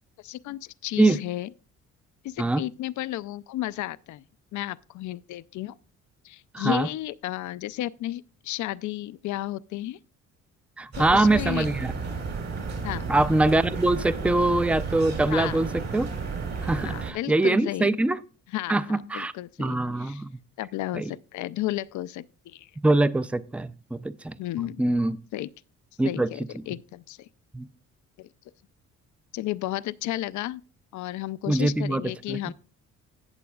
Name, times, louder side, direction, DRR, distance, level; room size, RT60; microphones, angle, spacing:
voice 1, 0.2-1.5 2.2-4.2 4.5-5.7 6.2-10.0 11.0-11.7 12.8-13.1 15.3-15.7 16.8-17.9 18.5-20.2 20.6-22.7 24.4-25.0 25.3-25.5 26.0-27.3 28.2-28.3 29.3-30.6 30.9-32.5, left 15 dB, 75° left, 0.5 m, -33 dB
voice 2, 6.5-6.9 10.8-11.9 13.1-15.7 15.9-16.1 16.6-18.2 18.7-19.3 19.6-20.4 20.9-21.1 22.8-24.4 24.8-25.2 26.0-26.3 27.5-27.7 31.5-32.0 32.3-32.5, right 2 dB, 5° right, 0.4 m, -23 dB
sound 1, 10.9-17.1, right 5 dB, 60° right, 3.4 m, -32 dB
17.5 x 6.9 x 2.3 m
cardioid pair, 90°, 30 cm